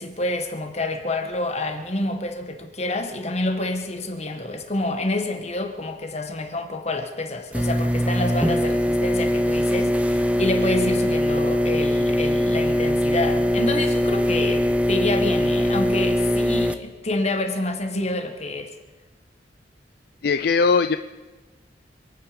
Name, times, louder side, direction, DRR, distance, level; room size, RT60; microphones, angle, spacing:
voice 1, 0.0-18.7, left 2 dB, 40° left, 5 dB, 1.6 m, -28 dB
sound 1, 7.5-16.7, equal, 10° right, 0.7 m, -21 dB
voice 2, 20.2-21.0, left 4 dB, 60° left, 10 dB, 0.4 m, -19 dB
27.0 x 9.3 x 5.2 m, 1.2 s
head